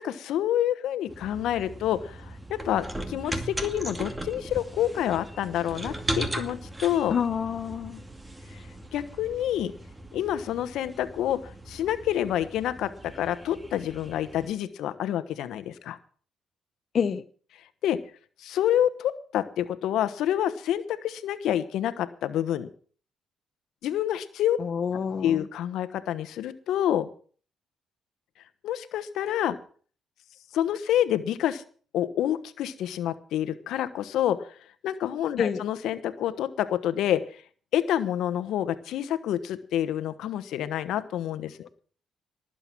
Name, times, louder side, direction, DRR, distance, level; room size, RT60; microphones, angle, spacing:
voice 1, 0.0-7.1 8.5-8.6 8.9-9.7 10.1-16.0 17.8-18.0 18.4-22.7 23.8-24.6 25.2-27.1 28.6-29.6 30.5-31.6 31.9-34.6 34.8-37.4 37.7-41.7, left 11 dB, 80° left, 12 dB, 1.1 m, -28 dB
sound 1, 1.1-14.5, right 1 dB, 15° right, 2.3 m, -38 dB
voice 2, 7.1-8.0 16.9-17.2 24.6-25.5 35.4-35.6, left 7 dB, 50° left, 9 dB, 0.9 m, -28 dB
19.0 x 7.9 x 6.1 m, 0.43 s
cardioid pair, 90°, 0 cm